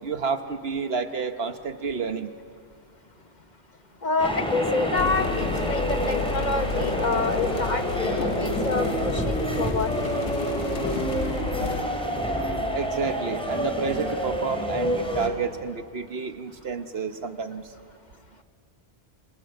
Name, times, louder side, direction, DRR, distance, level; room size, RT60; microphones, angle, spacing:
voice 1, 0.0-2.3 12.7-17.7, right 5 dB, 60° right, 8 dB, 1.4 m, -30 dB
voice 2, 4.0-9.9, left 3 dB, 40° left, 8 dB, 1.1 m, -27 dB
sound 1, 4.2-15.3, equal, 5° left, 4.0 m, -28 dB
sound 2, 5.0-11.8, left 6 dB, 80° left, 1.2 m, -33 dB
28.0 x 26.5 x 8.0 m, 2.3 s
omnidirectional pair, 1.1 m